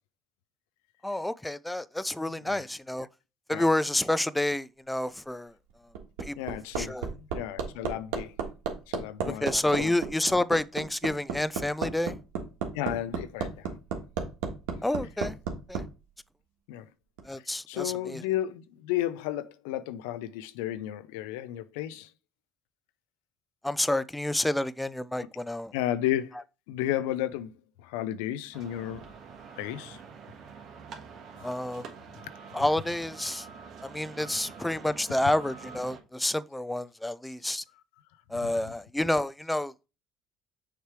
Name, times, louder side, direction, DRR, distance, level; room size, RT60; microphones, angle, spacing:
voice 1, 1.0-3.1 3.5-5.5 6.2-7.1 9.3-12.2 14.8-15.4 15.7-15.8 17.3-18.2 23.6-25.7 31.4-31.9 32.5-33.5 33.8-37.6 38.3-39.7, left 1 dB, 10° left, 0.4 m, -29 dB
Hammer, 5.7-15.8 17.2-17.3, right 6 dB, 85° right, 1.4 m, -32 dB
voice 2, 6.4-8.4 8.9-9.5 9.8-9.9 12.7-13.7 16.7-16.9 17.7-22.1 25.7-26.3 26.7-27.5 27.8-29.1 29.6-30.0 38.4-38.7, left 12 dB, 90° left, 0.4 m, -33 dB
sound 1, 28.5-36.0, right 5 dB, 60° right, 1.4 m, -46 dB
6.6 x 3.2 x 4.7 m
supercardioid pair, 85°, 0 cm